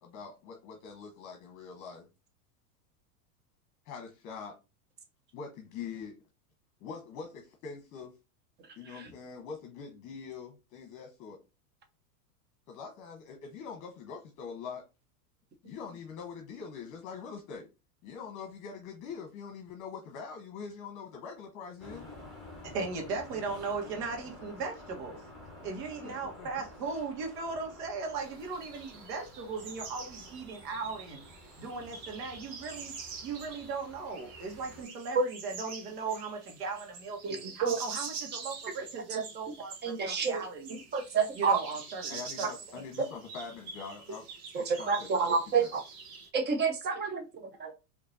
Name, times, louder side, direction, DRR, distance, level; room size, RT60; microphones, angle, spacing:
voice 1, 0.0-2.1 3.9-4.6 5.3-6.1 6.8-8.1 8.8-11.4 12.7-14.8 15.6-17.7 18.0-22.1 26.0-26.5 42.1-44.2 44.5-45.7, left 5 dB, 40° left, 1.0 m, -43 dB
sound 1, 21.8-34.8, left 1 dB, ahead, 1.3 m, -51 dB
voice 2, 22.6-25.2 25.6-31.2 31.6-32.9 33.2-40.8 41.3-42.8, right 4 dB, 85° right, 1.4 m, -38 dB
sound 2, 28.2-46.3, right 5 dB, 55° right, 1.2 m, -46 dB
voice 3, 39.8-40.4 40.7-41.6 44.5-45.8 46.3-47.2, right 5 dB, 20° right, 0.7 m, -29 dB
4.3 x 2.9 x 2.6 m
supercardioid pair, 130°, 46 cm